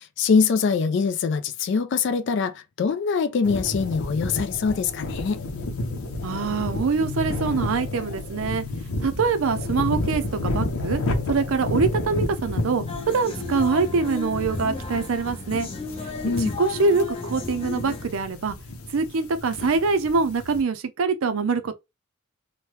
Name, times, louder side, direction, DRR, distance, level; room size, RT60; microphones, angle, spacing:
voice 1, 0.0-5.4 16.2-16.6, left 5 dB, 55° left, 0.3 m, -23 dB
sound 1, 3.4-20.6, left 2 dB, 90° left, 0.7 m, -31 dB
voice 2, 6.2-8.6 9.0-11.0 11.3-15.7 16.6-18.6 18.9-21.7, right 4 dB, 70° right, 0.5 m, -24 dB
sound 2, 12.9-18.1, left 4 dB, 25° left, 0.7 m, -33 dB
3.1 x 2.1 x 2.9 m
head